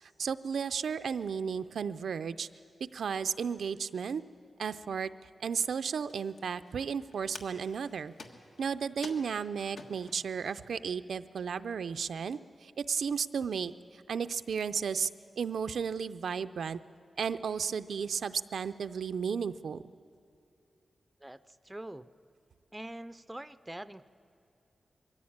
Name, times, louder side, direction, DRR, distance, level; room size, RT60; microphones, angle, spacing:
voice 1, 0.0-2.5 2.8-4.2 4.6-5.1 5.4-8.1 8.6-15.1 15.4-16.8 17.2-19.8, right 6 dB, 85° right, 11 dB, 0.4 m, -34 dB
sound 1, 5.6-10.3 11.0-11.1 11.3-11.8, left 3 dB, 85° left, 1.5 m, -51 dB
voice 2, 21.2-22.1 22.7-24.1, right 1 dB, 10° right, 13 dB, 0.4 m, -44 dB
22.0 x 15.0 x 8.7 m, 2.6 s
wide cardioid pair, 165°, 0 cm